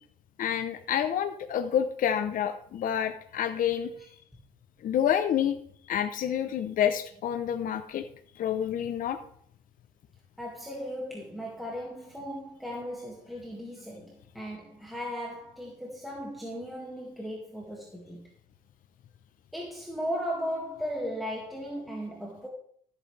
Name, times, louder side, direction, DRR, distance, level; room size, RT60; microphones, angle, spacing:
voice 1, 0.4-3.9 4.8-5.6 5.9-8.1 8.4-9.2, left 9 dB, 55° left, 0.8 m, -28 dB
voice 2, 10.4-18.3 19.5-22.5, equal, ahead, 2.1 m, -36 dB
14.0 x 8.2 x 3.4 m
cardioid pair, 110°, 17 cm